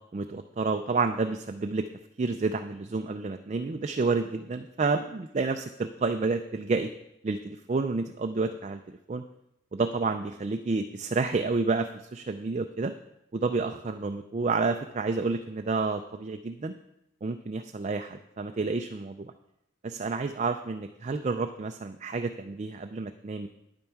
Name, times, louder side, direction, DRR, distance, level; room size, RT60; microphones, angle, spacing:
voice 1, 0.1-1.9 2.2-6.9 7.2-9.2 9.7-12.9 13.3-16.7 17.2-19.3 19.8-23.5, right 4 dB, 35° right, 7 dB, 0.3 m, -30 dB
9.8 x 8.8 x 4.6 m, 0.85 s
head